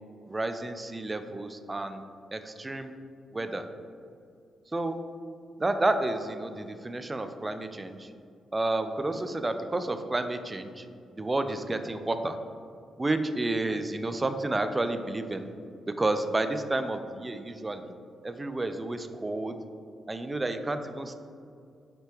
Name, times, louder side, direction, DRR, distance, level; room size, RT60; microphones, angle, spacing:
voice 1, 0.3-2.0 2.3-2.9 3.3-3.6 4.7-5.0 5.6-8.1 8.5-10.9 11.2-12.4 13.0-15.5 15.9-17.9 18.2-19.6 20.1-21.1, right 2 dB, 25° right, 9 dB, 0.3 m, -30 dB
4.5 x 3.3 x 3.0 m, 2.4 s
cardioid pair, 60°, 0 cm